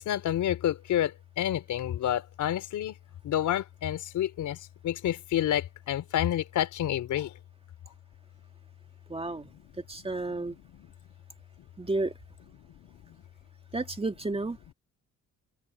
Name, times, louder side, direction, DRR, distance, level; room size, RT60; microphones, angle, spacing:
voice 1, 0.0-3.0 3.2-7.3 10.7-10.9 12.8-13.2, left 11 dB, 75° left, 4.1 m, -29 dB
voice 2, 9.1-9.5 9.9-10.6 11.8-12.1 13.7-14.6, right 2 dB, 20° right, 2.2 m, -31 dB
cardioid pair, 90°, 30 cm